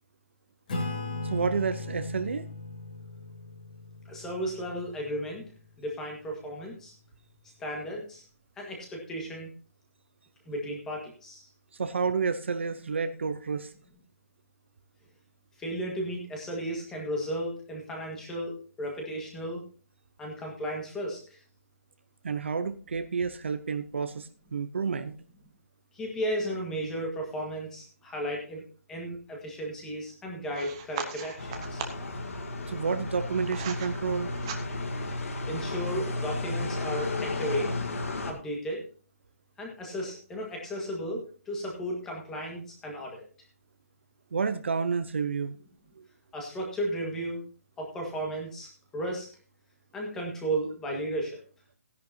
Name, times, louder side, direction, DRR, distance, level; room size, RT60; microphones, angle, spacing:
Acoustic guitar / Strum, 0.7-5.7, left 2 dB, 30° left, 3.2 m, -38 dB
voice 1, 1.2-2.5 11.7-13.7 22.2-25.1 32.7-34.3 44.3-45.6 46.0-46.1, right 5 dB, 45° right, 10 dB, 0.8 m, -30 dB
voice 2, 4.0-5.4 5.8-6.9 7.6-8.2 8.6-9.5 10.4-11.5 15.6-19.6 20.2-21.4 25.9-31.9 35.5-37.7 38.3-38.9 39.6-43.2 46.3-47.4 47.8-49.3 49.9-51.4, equal, 5° left, -1 dB, 1.6 m, -34 dB
sound 1, 30.5-32.1 32.9-33.9 34.3-35.0, right 8 dB, 15° right, 0.9 m, -39 dB
sound 2, 31.4-38.3, left 2 dB, 60° left, 2.6 m, -33 dB
16.0 x 10.5 x 2.8 m, 0.38 s
hypercardioid pair, 175°, 9 cm